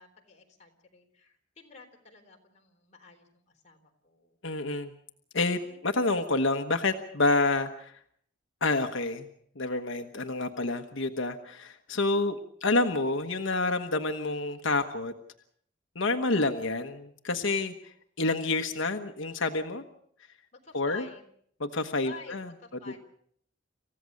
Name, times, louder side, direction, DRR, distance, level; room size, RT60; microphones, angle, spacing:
voice 1, 0.0-4.4 5.6-6.0 20.6-21.2 22.0-23.0, left 4 dB, 35° left, 1 dB, 4.0 m, -51 dB
voice 2, 4.4-4.9 5.3-7.9 8.6-9.3 9.5-15.1 15.9-19.8 20.7-21.1 21.6-22.5, left 2 dB, 85° left, 5 dB, 1.3 m, -28 dB
27.5 x 15.5 x 6.5 m, 0.65 s
head